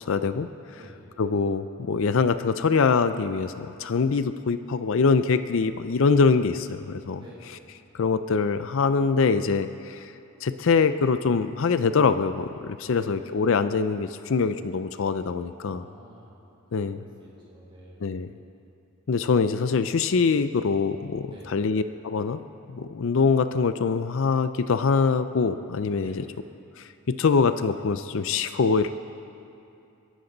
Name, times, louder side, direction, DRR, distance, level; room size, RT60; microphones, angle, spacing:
voice 1, 0.1-0.5 1.2-7.2 7.9-10.1 10.4-15.8 16.7-17.0 18.0-18.3 19.1-22.4 22.7-26.2 26.8-28.9, left 5 dB, 60° left, 11 dB, 0.5 m, -24 dB
voice 2, 12.9-13.4 15.6-16.3 16.9-18.2 21.3-21.5 26.0-26.2, equal, 25° right, -5 dB, 4.3 m, -48 dB
29.0 x 11.5 x 4.0 m, 2.6 s
head